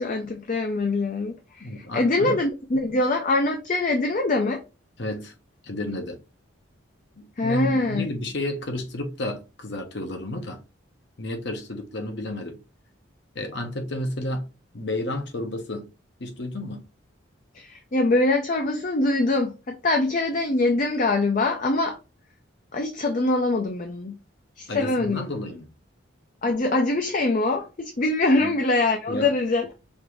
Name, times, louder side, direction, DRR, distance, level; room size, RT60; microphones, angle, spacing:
voice 1, 0.0-4.6 7.4-8.1 17.5-22.0 22.7-24.2 24.6-25.3 26.4-29.7, left 2 dB, 40° left, 0.5 m, -23 dB
voice 2, 1.6-2.4 5.0-5.3 5.6-6.2 7.2-10.6 11.2-12.6 13.3-14.5 14.7-15.9 16.2-16.8 24.7-25.7 28.4-28.5 29.1-29.3, left 1 dB, 55° left, 0.8 m, -31 dB
5.2 x 2.5 x 3.1 m
head